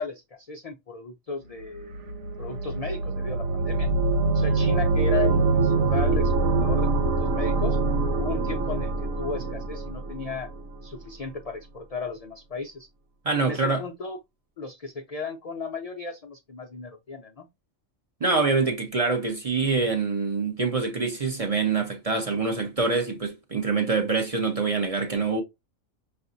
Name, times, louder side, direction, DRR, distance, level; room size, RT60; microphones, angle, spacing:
voice 1, 0.0-1.9 2.4-3.9 4.3-7.8 8.2-10.5 10.8-12.9 13.4-14.2 14.6-17.5, left 4 dB, 70° left, 0.3 m, -35 dB
sound 1, 1.7-10.6, right 3 dB, 85° right, 1.1 m, -24 dB
voice 2, 13.2-13.8 18.2-25.4, right 4 dB, 35° right, 0.6 m, -25 dB
5.5 x 2.5 x 2.5 m
omnidirectional pair, 1.4 m